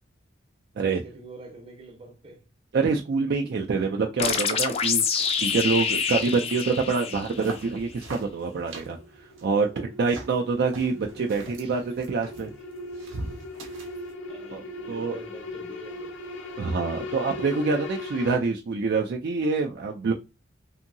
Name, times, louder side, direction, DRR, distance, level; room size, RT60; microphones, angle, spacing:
voice 1, 0.8-2.5 3.4-3.5 6.4-6.6 11.2-11.7 12.5-12.6 14.3-16.1, right 1 dB, 30° right, 0.7 m, -46 dB
voice 2, 2.7-9.0 9.4-12.5 14.5-15.2 16.6-20.1, right 4 dB, 55° right, 0.3 m, -26 dB
sound 1, 4.2-7.7, left 6 dB, 30° left, 0.3 m, -26 dB
sound 2, 7.1-14.1, right 2 dB, 85° right, 0.7 m, -43 dB
sound 3, 7.9-18.4, left 2 dB, 75° left, 0.6 m, -39 dB
2.7 x 2.7 x 2.6 m
head